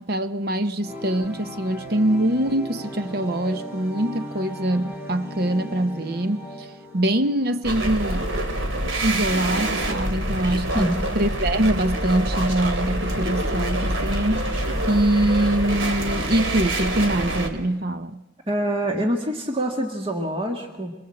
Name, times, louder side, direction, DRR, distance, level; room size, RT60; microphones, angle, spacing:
voice 1, 0.0-8.3 9.0-18.2, right 1 dB, 50° right, 0.9 m, -24 dB
sound 1, 0.8-7.7, equal, 10° right, 4.0 m, -37 dB
sound 2, 7.6-17.5, right 1 dB, 80° right, 3.0 m, -26 dB
voice 2, 10.7-11.2 18.5-20.9, right 1 dB, 30° right, 1.9 m, -25 dB
24.5 x 22.5 x 7.7 m
head